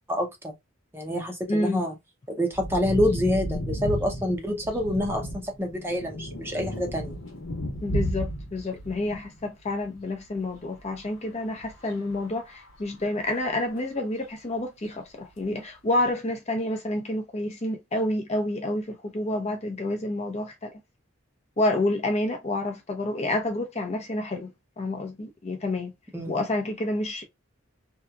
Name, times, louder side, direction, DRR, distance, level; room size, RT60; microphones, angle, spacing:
voice 1, 0.1-0.5 0.9-1.9 2.3-7.2 26.1-26.4, left 1 dB, 10° right, 0.6 m, -27 dB
voice 2, 1.5-1.8 7.8-20.7 21.6-24.5 24.8-25.9 26.3-27.3, left 1 dB, 35° left, 0.6 m, -29 dB
sound 1, 2.5-9.4 9.8-10.0 11.6-12.6 13.8-13.9, equal, 80° left, 1.1 m, -33 dB
2.8 x 2.4 x 2.2 m
head